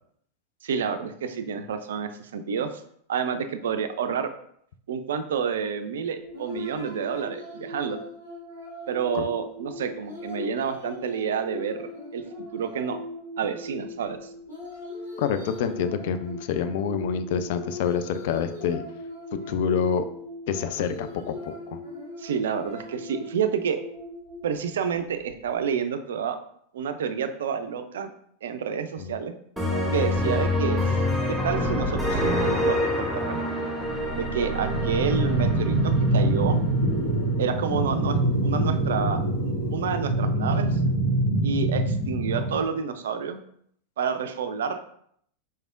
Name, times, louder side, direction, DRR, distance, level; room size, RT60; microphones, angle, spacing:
voice 1, 0.6-2.7 3.1-4.3 4.9-8.0 8.9-13.0 13.4-14.3 22.2-23.8 24.4-26.4 26.7-28.1 28.4-29.3 29.9-30.9 31.3-33.4 34.1-36.6 37.4-40.8 41.4-43.4 44.0-44.9, right 7 dB, 60° right, 9 dB, 0.3 m, -29 dB
sound 1, 6.1-25.7, left 2 dB, 85° left, 1.5 m, -40 dB
voice 2, 15.2-18.8 19.5-20.1 20.5-21.8 29.0-29.2, left 7 dB, 50° left, 10 dB, 0.3 m, -27 dB
sound 2, 29.6-37.2, left 1 dB, ahead, 0.9 m, -27 dB
sound 3, 34.6-42.6, right 1 dB, 70° left, 1.0 m, -24 dB
4.2 x 3.3 x 2.4 m, 0.67 s
figure-of-eight pair, 90°, 0 cm